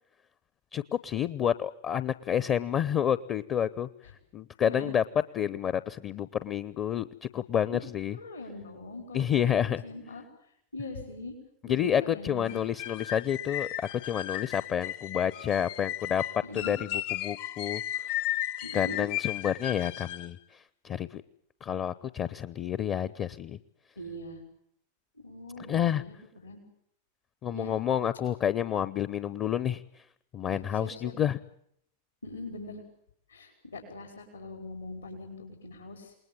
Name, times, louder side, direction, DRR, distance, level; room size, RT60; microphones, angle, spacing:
voice 1, 0.7-3.9 4.3-5.0 5.3-8.2 9.1-9.8 11.7-16.2 16.5-17.8 18.1-18.2 18.7-21.2 21.6-23.6 25.7-26.0 27.4-30.0 30.3-31.4, left 9 dB, 30° left, 16 dB, 0.9 m, -29 dB
voice 2, 8.1-10.2 10.7-11.3 11.6-12.6 16.4-16.8 18.6-19.0 24.0-24.4 25.2-26.1 26.4-26.6 27.5-27.7 30.5-31.1 32.2-32.8 33.3-36.1, left 2 dB, 75° left, 3 dB, 5.3 m, -41 dB
sound 1, 12.5-20.3, left 13 dB, 50° left, 1.1 m, -35 dB
28.5 x 20.5 x 7.5 m, 0.73 s
figure-of-eight pair, 90°, 0 cm